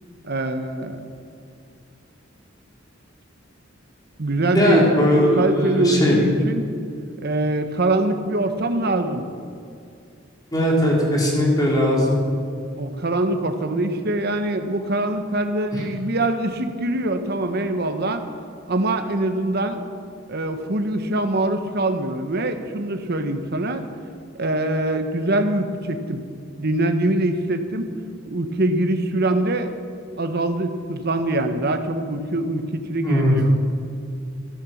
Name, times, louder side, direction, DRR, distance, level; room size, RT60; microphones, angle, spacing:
voice 1, 0.2-1.0 4.2-6.7 7.2-9.3 12.8-18.2 18.7-19.8 20.3-23.9 24.4-26.2 26.6-27.9 28.3-29.7 30.2-33.4, right 2 dB, 55° right, 7 dB, 1.2 m, -23 dB
voice 2, 4.5-6.2 10.5-12.2 15.7-15.8 33.0-33.4, left 1 dB, 20° left, -3 dB, 3.6 m, -19 dB
14.5 x 11.0 x 7.3 m, 2.4 s
head